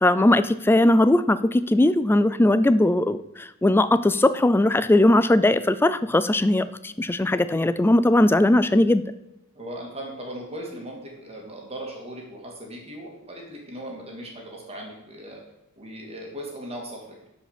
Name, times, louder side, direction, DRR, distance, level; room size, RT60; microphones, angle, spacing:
voice 1, 0.0-9.0, left 1 dB, 10° left, 14 dB, 0.3 m, -19 dB
voice 2, 9.5-15.4 15.8-17.1, right 1 dB, 30° right, 0 dB, 2.4 m, -38 dB
12.0 x 5.0 x 5.2 m, 0.89 s
head